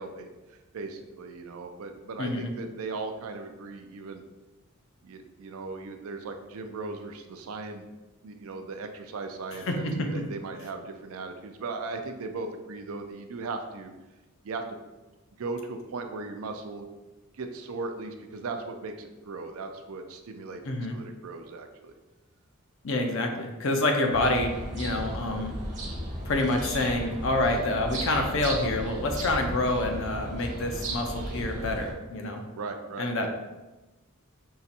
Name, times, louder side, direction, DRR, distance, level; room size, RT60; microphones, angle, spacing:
voice 1, 0.0-4.2 5.0-7.9 8.2-13.9 14.4-14.6 15.4-16.9 17.3-20.6 20.9-21.9 32.5-33.3, right 3 dB, 80° right, 6 dB, 0.4 m, -38 dB
voice 2, 2.2-2.5 9.7-10.2 20.6-21.0 22.8-25.5 26.3-32.4 33.0-33.3, left 2 dB, 65° left, 3 dB, 0.6 m, -27 dB
sound 1, 24.1-31.9, right 1 dB, 35° right, 1.0 m, -35 dB
5.6 x 2.7 x 2.5 m, 1.1 s
head